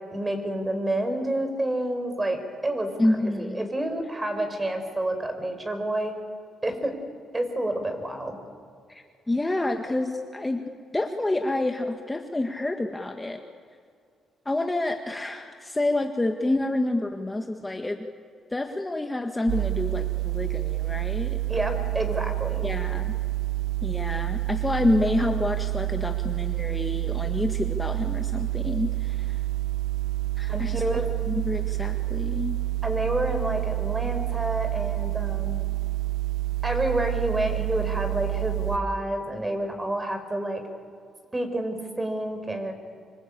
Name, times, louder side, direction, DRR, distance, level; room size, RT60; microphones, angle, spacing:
voice 1, 0.1-2.9 3.4-6.2 6.6-7.0 7.3-8.4 21.5-22.6 30.5-31.1 32.8-35.6 36.6-40.6 41.3-42.7, right 1 dB, 20° right, 7 dB, 4.9 m, -29 dB
voice 2, 3.0-3.7 8.9-10.6 10.9-13.4 14.5-18.1 18.5-21.4 22.6-23.2 23.8-29.4 30.4-30.8 31.3-32.6, left 2 dB, 15° left, 5 dB, 1.7 m, -28 dB
sound 1, 19.5-38.8, right 18 dB, 85° right, 0.6 m, -28 dB
25.5 x 25.5 x 8.7 m, 2.3 s
cardioid pair, 90°, 0 cm